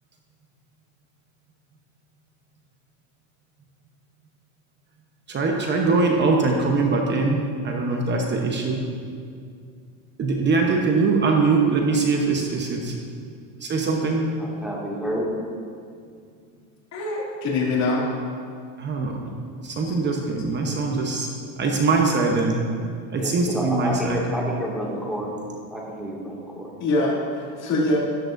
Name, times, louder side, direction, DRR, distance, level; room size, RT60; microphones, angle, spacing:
voice 1, 5.3-7.4 7.6-8.8 10.2-12.9 13.6-14.3 18.8-19.3 19.6-21.3 21.6-22.6 23.1-24.2, right 3 dB, 25° right, 1 dB, 1.0 m, -22 dB
voice 2, 14.4-15.3 23.2-25.4 25.7-26.7, equal, ahead, -5 dB, 2.1 m, -30 dB
voice 3, 16.9-18.0 19.8-19.9 26.8-28.0, left 2 dB, 35° left, -4 dB, 2.7 m, -24 dB
13.0 x 10.5 x 2.6 m, 2.3 s
supercardioid pair, 135°, 45 cm